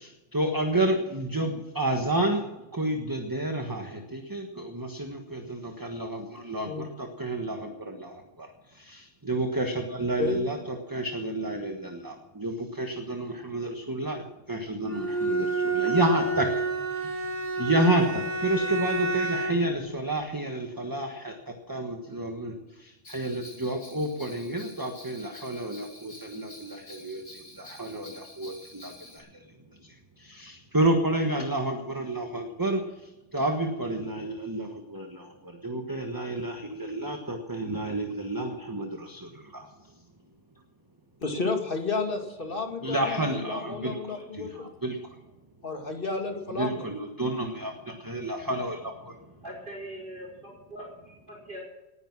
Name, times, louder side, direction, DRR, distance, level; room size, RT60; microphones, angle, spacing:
voice 1, 0.0-2.4 2.7-8.5 8.7-14.2 14.5-16.5 16.9-17.3 17.6-21.3 21.7-22.5 22.8-29.4 29.8-32.8 33.3-39.7 42.8-44.0 44.4-45.0 46.6-49.2, right 1 dB, 20° right, 4 dB, 1.4 m, -30 dB
Bowed string instrument, 14.9-19.7, right 3 dB, 15° left, 2.7 m, -29 dB
Bell, 23.0-29.2, left 1 dB, 75° left, 4.8 m, -49 dB
voice 2, 41.2-44.7 45.6-46.9, left 3 dB, 50° left, 3 dB, 2.4 m, -32 dB
voice 3, 49.4-51.6, right 1 dB, 45° right, -2 dB, 4.9 m, -42 dB
19.5 x 9.6 x 6.1 m, 1.0 s
omnidirectional pair, 1.2 m